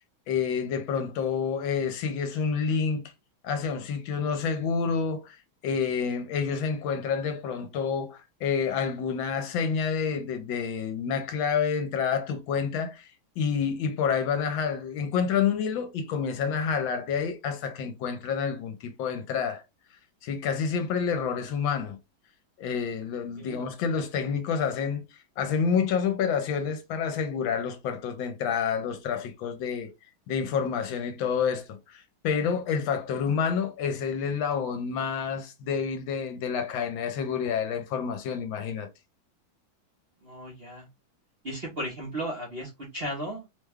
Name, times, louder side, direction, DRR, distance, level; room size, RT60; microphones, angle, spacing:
voice 1, 0.3-3.0 3.4-5.4 5.6-13.1 13.4-19.6 20.2-22.0 22.6-25.0 25.4-29.9 30.3-38.9, left 6 dB, 75° left, 1.4 m, -28 dB
voice 2, 40.2-40.9 41.4-43.5, right 1 dB, 45° right, 0.7 m, -35 dB
3.3 x 2.2 x 3.3 m
omnidirectional pair, 2.2 m